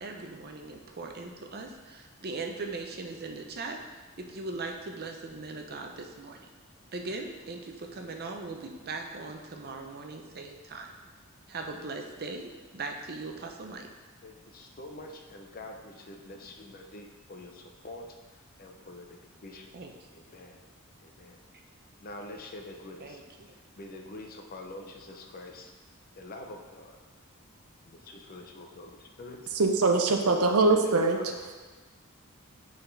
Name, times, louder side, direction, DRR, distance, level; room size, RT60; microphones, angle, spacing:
voice 1, 0.0-3.8 4.2-6.5 6.9-10.9 11.5-13.9 19.7-19.9 23.0-23.2, right 3 dB, 45° right, 3 dB, 0.6 m, -39 dB
voice 2, 14.2-19.7 20.1-20.6 21.0-21.4 22.0-23.2 23.5-25.7 26.1-27.0 27.8-29.4 30.6-31.5, left 2 dB, 40° left, 3 dB, 0.6 m, -46 dB
voice 3, 29.5-31.2, right 3 dB, 85° right, 4 dB, 0.7 m, -23 dB
8.3 x 4.0 x 3.3 m, 1.3 s
head